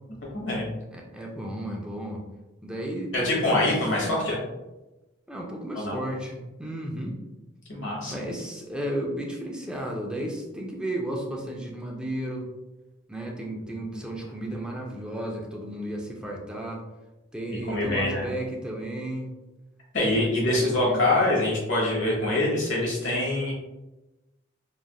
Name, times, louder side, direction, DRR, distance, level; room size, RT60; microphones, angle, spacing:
voice 1, 0.3-0.7 3.1-4.4 5.7-6.0 7.7-8.1 17.7-18.3 19.9-23.5, left 2 dB, 85° left, -3 dB, 1.1 m, -24 dB
voice 2, 0.9-2.2 2.6-3.6 3.9-4.2 5.3-7.2 8.1-12.4 13.1-16.8 17.3-19.3 20.1-21.3 22.0-22.4, right 1 dB, 5° right, -1 dB, 0.4 m, -34 dB
3.2 x 2.4 x 2.3 m, 1.0 s
head